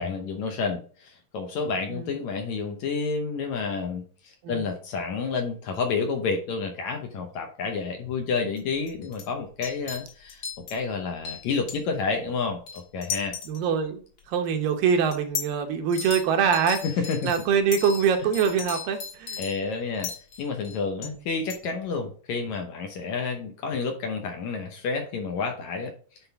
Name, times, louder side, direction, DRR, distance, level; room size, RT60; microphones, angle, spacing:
voice 1, 0.0-13.4 16.8-17.5 18.2-18.3 19.4-20.1 20.4-25.9, left 4 dB, 70° left, 4 dB, 1.9 m, -30 dB
sound 1, 8.6-8.7 8.9-9.3 9.6-10.8 11.3-11.8 12.7-13.7 14.2-14.3 15.1-15.5 15.9-16.2 16.5-21.1 21.5-21.6, left 6 dB, 50° left, 2.3 m, -35 dB
voice 2, 13.5-16.8 17.2-19.4 21.0-21.2, right 7 dB, 85° right, 6 dB, 2.6 m, -24 dB
9.8 x 3.8 x 3.4 m, 0.42 s
omnidirectional pair, 3.9 m